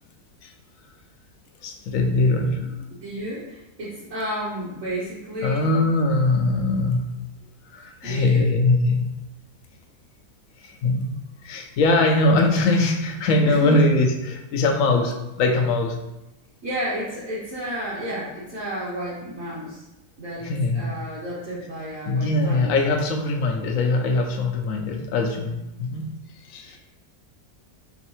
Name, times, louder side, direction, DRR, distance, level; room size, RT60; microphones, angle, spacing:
voice 1, 1.6-2.7 5.4-7.1 7.7-9.0 10.6-11.1 11.4-16.0 20.4-20.9 22.1-26.1 26.4-26.8, left 2 dB, 70° left, 4 dB, 0.8 m, -22 dB
voice 2, 2.6-5.7 8.0-8.5 13.4-13.8 16.6-19.8 20.2-22.8 26.6-26.8, equal, 60° right, -9 dB, 1.2 m, -31 dB
4.6 x 3.1 x 3.0 m, 0.95 s
omnidirectional pair, 1.7 m